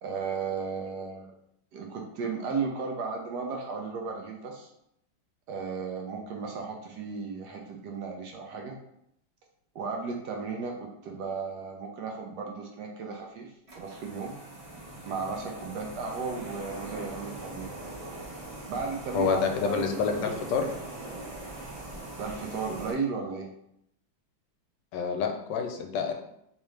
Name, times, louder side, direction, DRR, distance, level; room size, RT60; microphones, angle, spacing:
voice 1, 0.0-1.3 1.7-4.7 5.5-8.8 9.7-14.3 15.1-17.7 18.7-20.2 22.2-23.5, right 5 dB, 70° right, 1 dB, 1.0 m, -35 dB
sound 1, 13.7-22.9, right 2 dB, 30° right, 0.7 m, -41 dB
voice 2, 19.1-20.7 24.9-26.1, left 6 dB, 75° left, 4 dB, 1.2 m, -28 dB
3.6 x 3.0 x 3.2 m, 0.75 s
omnidirectional pair, 2.0 m